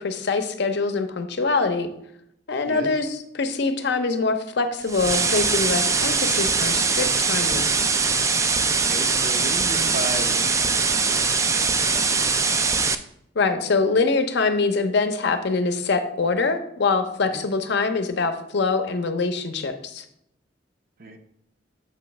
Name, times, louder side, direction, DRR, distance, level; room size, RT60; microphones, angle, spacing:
voice 1, 0.0-1.9 2.5-7.7 13.4-20.0, left 4 dB, 65° left, 8 dB, 0.7 m, -24 dB
voice 2, 2.6-3.0 8.8-12.8 17.2-17.5 21.0-21.2, right 2 dB, 50° right, 5 dB, 0.7 m, -36 dB
sound 1, 4.9-12.9, right 4 dB, 15° right, 0.3 m, -22 dB
7.3 x 3.1 x 5.8 m, 0.78 s
head